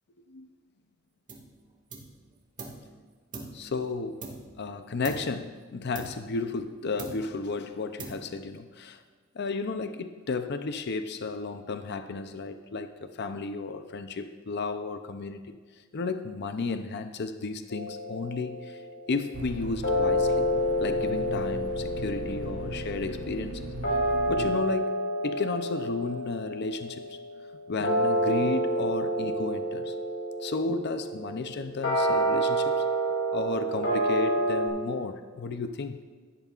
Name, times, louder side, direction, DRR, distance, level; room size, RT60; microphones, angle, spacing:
sound 1, 1.3-1.6 1.9-2.9 3.3-4.7 5.0-5.5 5.9-6.7 7.0-7.5 8.0-8.5, right 3 dB, 40° right, 1.8 m, -42 dB
voice 1, 3.5-4.3 4.6-9.0 9.3-15.6 15.9-18.8 19.1-20.5 20.8-23.6 24.3-27.2 27.7-29.9 30.4-32.8 33.3-36.0, left 3 dB, 55° left, 9 dB, 0.5 m, -33 dB
sound 2, 17.7-19.0 19.8-34.7, right 1 dB, 80° left, 3.5 m, -29 dB
sound 3, 19.3-24.5, right 2 dB, 85° right, 0.9 m, -38 dB
16.5 x 11.0 x 2.4 m, 1.5 s
head